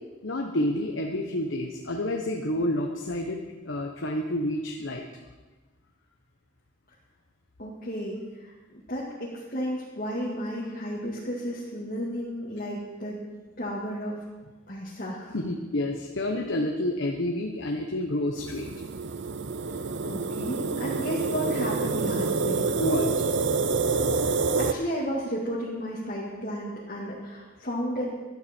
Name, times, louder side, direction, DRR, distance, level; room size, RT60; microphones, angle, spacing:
voice 1, 0.2-3.4 3.6-5.0 15.3-18.7 22.8-23.1, left 1 dB, 70° left, 2 dB, 1.1 m, -29 dB
voice 2, 7.6-8.5 8.9-13.2 13.6-14.2 14.7-15.4 20.1-22.8 24.2-28.1, equal, 45° left, -6 dB, 2.1 m, -33 dB
sound 1, 18.4-24.7, right 4 dB, 60° right, 0.6 m, -27 dB
15.5 x 12.0 x 4.5 m, 1.3 s
head